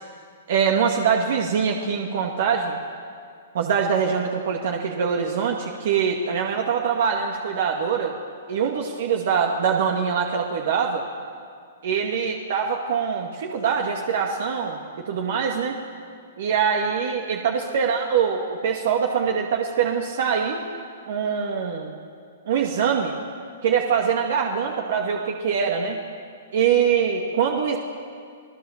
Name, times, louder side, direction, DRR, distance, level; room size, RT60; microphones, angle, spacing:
voice 1, 0.5-2.8 3.5-8.2 8.5-11.0 11.8-14.8 15.0-15.8 16.4-20.6 21.1-21.9 22.5-23.1 23.6-26.0 26.5-27.8, right 7 dB, 65° right, 1 dB, 2.1 m, -23 dB
28.5 x 18.0 x 7.3 m, 2.2 s
hypercardioid pair, 140°, 0 cm